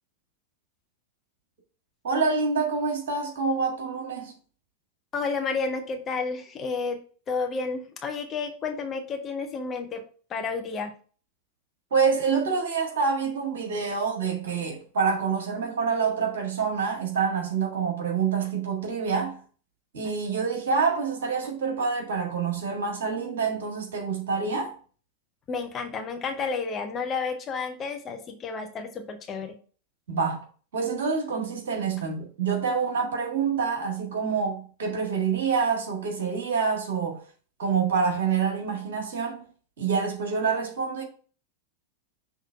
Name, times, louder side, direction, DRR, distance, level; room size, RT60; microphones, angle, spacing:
voice 1, 2.0-4.3 11.9-19.4 19.9-24.7 30.1-30.4 30.7-37.2 37.6-39.4 39.8-41.0, right 5 dB, 60° right, 1.7 m, -27 dB
voice 2, 5.1-7.0 7.3-10.0 10.3-10.9 25.5-29.6, left 4 dB, 25° left, 0.9 m, -31 dB
5.8 x 3.5 x 4.7 m
figure-of-eight pair, 90°, 0 cm